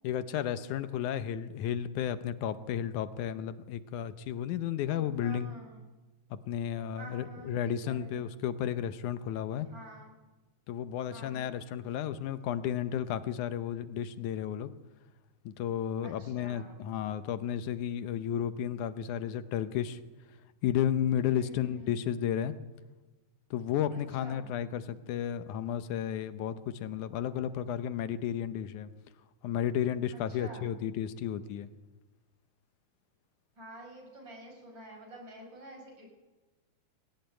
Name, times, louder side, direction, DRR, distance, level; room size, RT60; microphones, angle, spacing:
voice 1, 0.0-5.5 6.3-9.7 10.7-14.7 15.5-20.0 20.6-22.5 23.5-28.9 29.4-31.7, left 9 dB, 80° left, 12 dB, 2.3 m, -33 dB
voice 2, 4.9-5.8 7.0-8.3 9.7-10.2 11.1-11.6 16.0-16.8 21.3-22.0 23.9-24.5 27.1-27.2 30.1-30.7 33.6-36.1, equal, 35° right, 2 dB, 5.8 m, -49 dB
20.5 x 17.0 x 9.0 m, 1.2 s
omnidirectional pair, 3.6 m